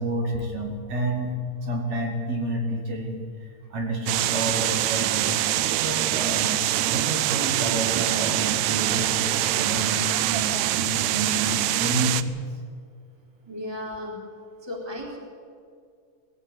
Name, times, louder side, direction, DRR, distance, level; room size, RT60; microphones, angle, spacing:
voice 1, 0.0-1.3 1.6-5.4 5.8-6.6 6.9-12.4, right 1 dB, 60° right, 0 dB, 3.5 m, -29 dB
sound 1, 4.1-12.2, right 14 dB, 75° right, 1.8 m, -24 dB
voice 2, 13.5-14.2 14.6-15.2, left 1 dB, 10° right, -1 dB, 3.4 m, -34 dB
19.5 x 15.5 x 9.4 m, 2.2 s
omnidirectional pair, 3.6 m